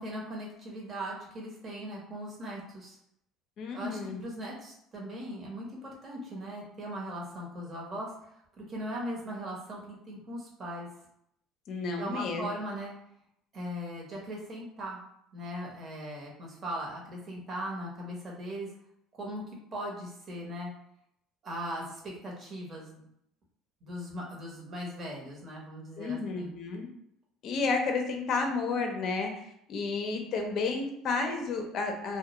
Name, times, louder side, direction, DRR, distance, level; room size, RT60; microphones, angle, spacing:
voice 1, 0.0-3.0 3.7-8.1 8.6-10.9 12.0-12.9 13.5-15.0 15.3-18.7 19.1-19.4 19.7-20.7 21.4-23.0 23.8-26.5, equal, 35° right, -3 dB, 0.9 m, -39 dB
voice 2, 3.6-4.2 11.7-12.5 26.0-26.9 27.4-32.2, left 4 dB, 50° left, 4 dB, 0.5 m, -31 dB
2.2 x 2.1 x 2.9 m, 0.75 s
cardioid pair, 125°, 0 cm